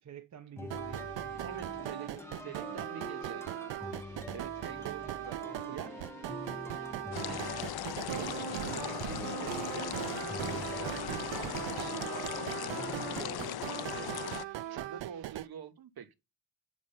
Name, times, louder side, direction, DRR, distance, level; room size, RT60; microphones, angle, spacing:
voice 1, 0.0-2.8 4.8-6.5, right 9 dB, 40° right, 0.7 m, -53 dB
sound 1, 0.6-13.5, left 2 dB, 5° left, 0.5 m, -45 dB
sound 2, 0.7-15.5, right 14 dB, 90° right, 0.6 m, -39 dB
voice 2, 1.4-2.1 2.4-3.5 4.3-5.4 5.7-6.1 6.7-6.9 7.3-7.8 8.1-14.3 14.7-16.1, right 8 dB, 55° right, 1.1 m, -46 dB
sound 3, 7.1-14.4, left 13 dB, 60° left, 0.6 m, -39 dB
7.3 x 4.6 x 6.7 m
wide cardioid pair, 140°, 43 cm